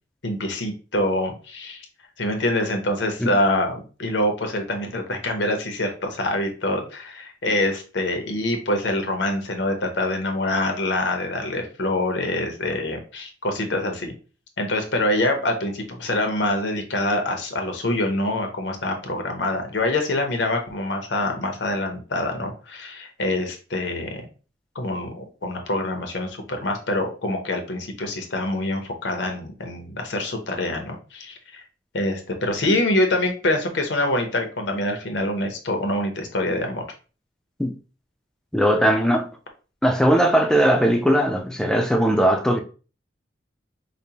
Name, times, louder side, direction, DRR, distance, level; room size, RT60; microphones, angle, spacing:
voice 1, 0.2-1.9 2.2-14.1 14.6-24.2 24.7-31.6 31.9-36.8, left 1 dB, 80° left, 0.8 m, -25 dB
voice 2, 38.5-39.3 39.8-42.6, equal, 5° left, 0.4 m, -19 dB
5.0 x 2.1 x 2.8 m
head